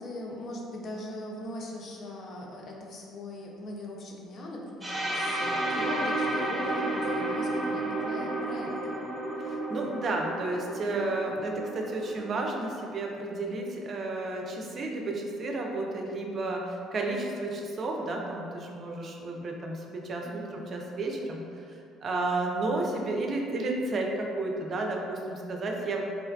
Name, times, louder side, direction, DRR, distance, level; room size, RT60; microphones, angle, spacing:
voice 1, 0.0-9.0 20.2-20.6, left 1 dB, 50° left, -1 dB, 0.5 m, -40 dB
sound 1, 4.8-12.6, right 1 dB, 15° right, 0.8 m, -32 dB
voice 2, 9.4-20.3 20.5-21.4 22.0-26.0, right 2 dB, 45° right, 0 dB, 0.4 m, -32 dB
3.7 x 2.2 x 2.2 m, 2.5 s
hypercardioid pair, 55°, 0 cm